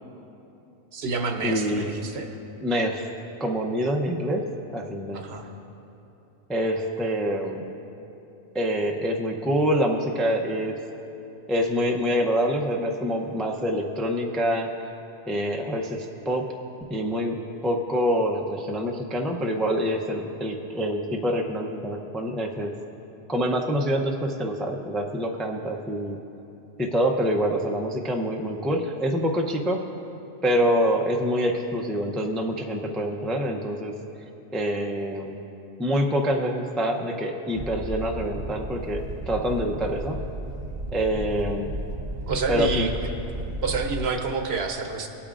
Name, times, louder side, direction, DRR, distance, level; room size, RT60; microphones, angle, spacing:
voice 1, 0.9-2.3 5.1-5.5 42.3-42.9 43.6-45.1, right 4 dB, 65° right, 4 dB, 1.0 m, -28 dB
voice 2, 1.4-1.9 2.6-3.1 3.4-4.4 4.7-5.2 6.5-7.7 8.5-10.8 11.5-14.7 15.3-16.5 16.9-17.4 17.6-22.7 23.3-26.2 26.8-29.8 30.4-33.9 34.5-35.4 35.8-40.2 40.9-41.8 42.5-42.9, equal, ahead, 1 dB, 0.4 m, -26 dB
sound 1, 37.5-44.1, right 1 dB, 45° right, 0.7 m, -34 dB
19.5 x 8.5 x 2.5 m, 2.9 s
omnidirectional pair, 1.2 m